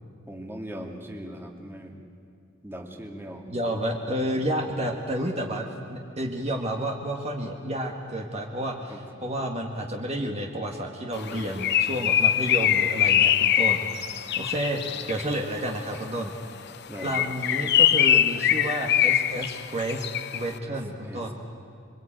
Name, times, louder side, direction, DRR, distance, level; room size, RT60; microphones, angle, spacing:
voice 1, 0.3-2.0 2.6-3.4 4.7-4.8 8.9-9.0 11.2-11.6 12.6-12.7 16.9-17.2 20.6-20.7 21.0-21.3, equal, 10° right, 2 dB, 2.2 m, -40 dB
voice 2, 3.5-14.0 14.4-16.3 17.0-20.1 20.3-21.3, right 1 dB, 30° right, 1 dB, 1.9 m, -30 dB
Bird, 11.2-15.3 16.9-20.5, left 10 dB, 50° left, 0.7 m, -23 dB
26.5 x 24.0 x 9.0 m, 2.6 s
head